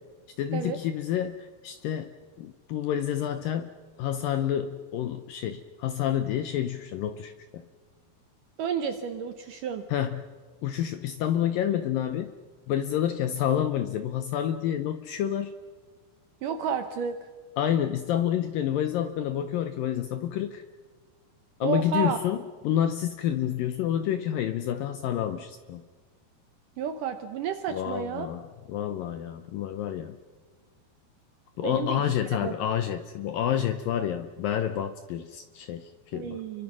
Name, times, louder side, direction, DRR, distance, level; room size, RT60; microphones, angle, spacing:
voice 1, 0.4-3.7 4.0-7.6 9.9-10.3 10.6-12.3 12.7-15.5 17.6-20.7 21.6-22.4 22.6-25.8 27.7-28.4 28.7-30.2 31.6-36.4, left 10 dB, 75° left, 9 dB, 2.1 m, -29 dB
voice 2, 8.6-9.8 16.4-17.2 21.6-22.2 26.8-28.3 31.6-32.0 32.4-32.5 36.1-36.6, right 7 dB, 75° right, 7 dB, 2.0 m, -31 dB
30.0 x 23.5 x 6.2 m, 1.5 s
omnidirectional pair, 4.9 m